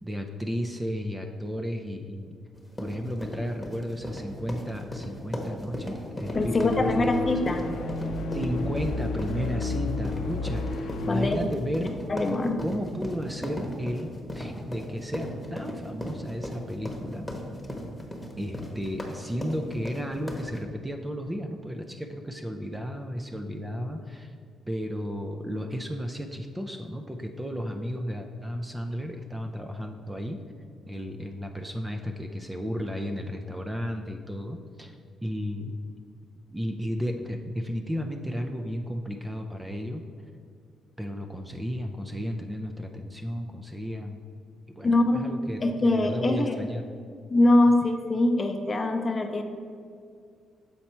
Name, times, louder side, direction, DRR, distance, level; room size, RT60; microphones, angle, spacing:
voice 1, 0.0-2.3 2.8-7.3 8.3-11.9 12.6-17.3 18.4-24.3 24.7-30.4 30.9-35.0 35.2-35.7 36.5-40.0 41.0-44.2 44.8-45.6 45.9-46.9, equal, 10° right, 4 dB, 0.4 m, -33 dB
sound 1, 2.5-20.6, equal, 5° left, 1.0 m, -37 dB
sound 2, 6.2-11.4, left 3 dB, 80° left, 0.5 m, -31 dB
voice 2, 6.3-7.8 11.1-11.5 12.1-12.6 44.8-45.3 45.6-46.6 47.3-49.4, left 2 dB, 30° left, 5 dB, 0.6 m, -23 dB
7.0 x 4.2 x 4.3 m, 2.2 s
cardioid pair, 90°, 0 cm